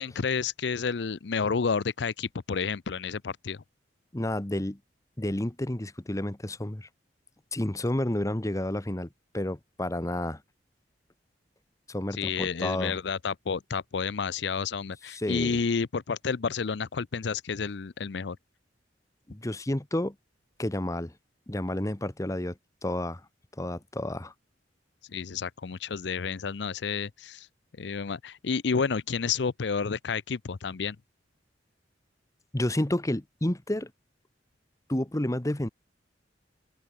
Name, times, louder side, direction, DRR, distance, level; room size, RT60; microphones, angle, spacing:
voice 1, 0.0-3.6 12.1-18.4 25.1-27.5 27.8-31.0, left 5 dB, 70° left, 0.6 m, -30 dB
voice 2, 4.1-4.8 5.2-6.9 7.5-9.1 9.3-10.4 11.9-13.0 15.1-15.6 19.3-20.1 20.6-21.1 21.5-23.2 23.6-24.3 32.5-33.9 34.9-35.7, left 1 dB, 20° left, 1.0 m, -30 dB
head